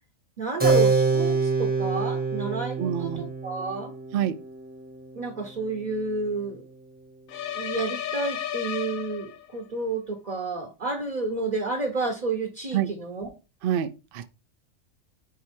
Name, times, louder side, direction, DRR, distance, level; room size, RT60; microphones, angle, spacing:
voice 1, 0.4-3.9 5.1-6.6 7.5-13.3, right 3 dB, 35° right, 1.0 m, -30 dB
Keyboard (musical), 0.6-6.7, right 4 dB, 10° right, 1.0 m, -27 dB
voice 2, 2.8-3.3 4.1-4.4 12.7-12.9 13.6-14.3, right 10 dB, 65° right, 0.5 m, -27 dB
sound 1, 7.3-9.7, left 10 dB, 85° left, 1.1 m, -33 dB
4.8 x 4.6 x 4.4 m
omnidirectional pair, 1.4 m